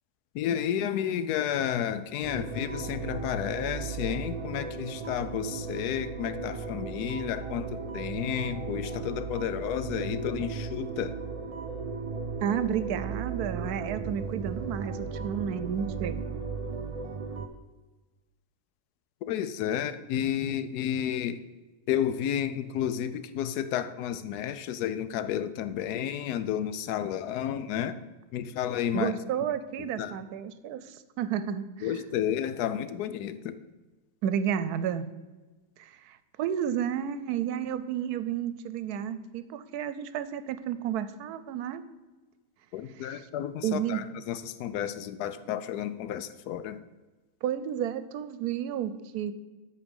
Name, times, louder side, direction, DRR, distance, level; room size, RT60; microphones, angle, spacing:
voice 1, 0.3-11.1 19.3-21.4 21.9-28.0 28.3-29.1 30.0-30.1 31.8-33.6 42.7-46.8, left 10 dB, 90° left, 13 dB, 1.1 m, -31 dB
sound 1, 2.2-17.5, right 5 dB, 50° right, 0.4 m, -36 dB
voice 2, 12.4-16.2 28.9-32.0 34.2-35.1 35.8-41.8 43.0-43.3 43.6-44.0 47.4-49.3, right 9 dB, 85° right, 13 dB, 1.1 m, -32 dB
13.0 x 4.5 x 5.3 m, 1.2 s
omnidirectional pair, 1.6 m